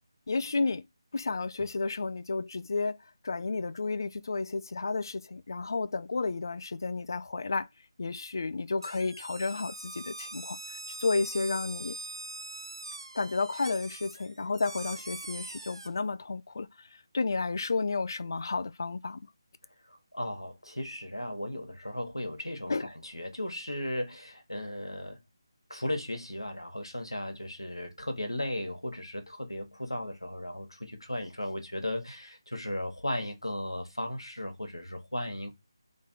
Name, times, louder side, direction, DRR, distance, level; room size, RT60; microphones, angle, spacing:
voice 1, 0.3-0.8 1.1-3.0 3.2-7.7 8.0-12.0 13.1-19.2 22.7-22.9, left 3 dB, 50° left, 0.3 m, -32 dB
sound 1, 8.8-15.9, right 2 dB, 70° right, 0.3 m, -42 dB
voice 2, 19.8-25.2 25.7-35.5, left 1 dB, 85° left, 1.3 m, -36 dB
3.4 x 3.1 x 4.4 m
figure-of-eight pair, 155°, 3 cm